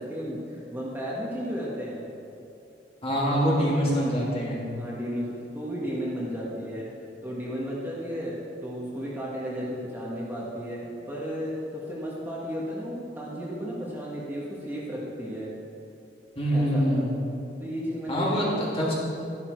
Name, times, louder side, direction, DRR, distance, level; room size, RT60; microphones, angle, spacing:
voice 1, 0.0-2.0 3.1-3.3 3.5-3.9 4.7-6.9 7.2-8.4 8.6-15.5 16.5-17.1 17.6-18.4, equal, 10° right, -6 dB, 1.7 m, -34 dB
voice 2, 3.0-4.6 16.3-17.1 18.1-18.9, equal, 35° left, -5 dB, 3.0 m, -25 dB
13.0 x 11.0 x 4.7 m, 2.7 s
head